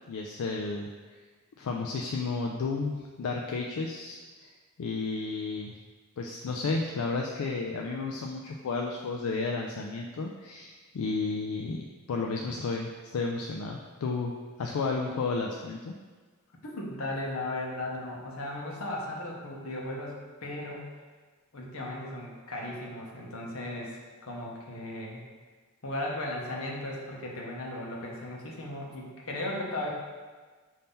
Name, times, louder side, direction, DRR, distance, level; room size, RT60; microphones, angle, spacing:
voice 1, 0.1-0.9 1.6-4.5 4.8-5.7 6.2-14.3 14.6-15.9, left 4 dB, 85° left, 0 dB, 0.4 m, -32 dB
voice 2, 16.6-20.8 21.5-25.2 25.8-29.9, left 1 dB, 70° left, -2 dB, 0.9 m, -36 dB
5.5 x 2.7 x 3.6 m, 1.4 s
head